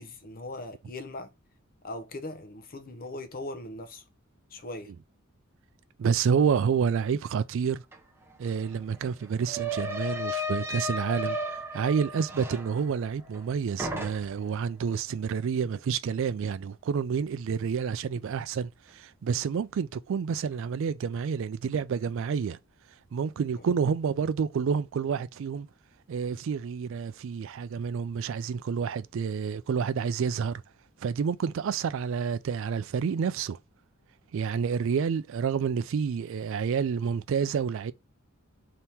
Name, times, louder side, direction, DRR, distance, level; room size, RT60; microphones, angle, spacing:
voice 1, 0.0-1.3 1.8-4.0 4.5-4.9 23.6-23.7, left 2 dB, 45° left, 0.7 m, -39 dB
voice 2, 6.0-7.8 8.4-11.4 11.7-22.6 23.1-25.7 26.1-30.6 31.0-33.6 34.3-37.9, right 6 dB, 65° right, 0.3 m, -29 dB
sound 1, 7.9-8.0 8.3-13.5 13.8-14.5, equal, 10° right, 0.5 m, -35 dB
3.4 x 2.9 x 4.2 m
head